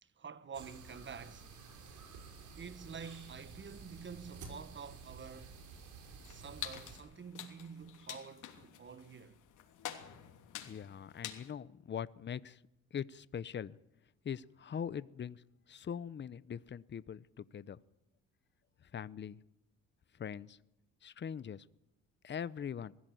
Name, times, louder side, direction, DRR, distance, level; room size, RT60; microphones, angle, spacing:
voice 1, 0.0-1.6 2.5-5.6 6.3-9.4, right 6 dB, 40° right, 1.4 m, -48 dB
sound 1, 0.5-7.0, right 4 dB, 75° right, 5.4 m, -52 dB
sound 2, 6.2-11.5, left 11 dB, 85° left, 3.1 m, -48 dB
voice 2, 10.7-12.6 12.9-13.8 14.2-15.4 15.7-17.8 18.9-19.4 20.2-20.6 21.0-21.6 22.2-22.9, left 8 dB, 35° left, 0.8 m, -42 dB
22.0 x 15.5 x 9.3 m
cardioid pair, 90°, 30 cm